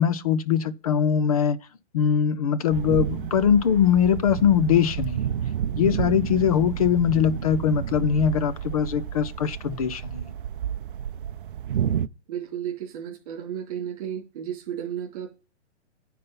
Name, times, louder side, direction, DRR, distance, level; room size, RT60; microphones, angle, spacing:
voice 1, 0.0-1.6 1.9-5.2 5.7-10.2, left 8 dB, 35° left, 0.7 m, -22 dB
sound 1, 2.7-12.1, right 9 dB, 50° right, 0.6 m, -30 dB
voice 2, 12.3-15.3, right 9 dB, 35° right, 3.1 m, -33 dB
9.7 x 4.2 x 5.6 m
hypercardioid pair, 170°, 34 cm